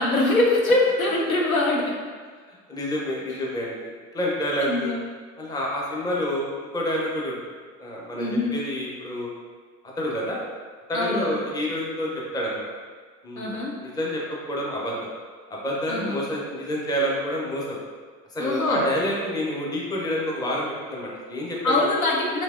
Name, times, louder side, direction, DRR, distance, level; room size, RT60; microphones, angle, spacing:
voice 1, 0.0-1.9 4.6-5.0 8.2-8.5 10.9-11.3 13.4-13.7 15.9-16.2 18.4-18.8 21.6-22.4, left 2 dB, 90° left, -1 dB, 0.5 m, -23 dB
voice 2, 2.5-4.9 5.4-6.5 6.7-7.4 7.8-9.3 10.0-10.4 10.9-12.7 13.2-13.5 13.8-14.2 14.5-15.1 15.5-17.8 18.3-21.9, equal, 10° left, -3 dB, 0.5 m, -28 dB
3.2 x 2.8 x 2.4 m, 1.5 s
figure-of-eight pair, 70°, 41 cm